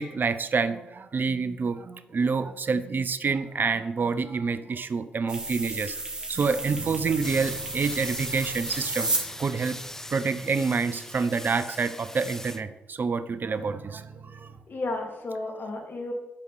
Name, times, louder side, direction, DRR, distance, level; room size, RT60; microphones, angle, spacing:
voice 1, 0.0-6.0 6.3-9.1 9.4-9.8 10.1-14.5, right 5 dB, 45° right, 13 dB, 0.8 m, -27 dB
sound 1, 5.3-9.2, right 2 dB, 20° right, 3.6 m, -33 dB
sound 2, 6.7-11.6 12.0-12.8 13.5-14.6, right 5 dB, 65° right, 2.3 m, -47 dB
sound 3, 7.2-12.6, left 1 dB, 10° left, 0.9 m, -40 dB
voice 2, 14.7-16.1, left 2 dB, 50° left, 2 dB, 3.3 m, -33 dB
8.8 x 6.5 x 8.0 m, 1.0 s
hypercardioid pair, 45°, 4 cm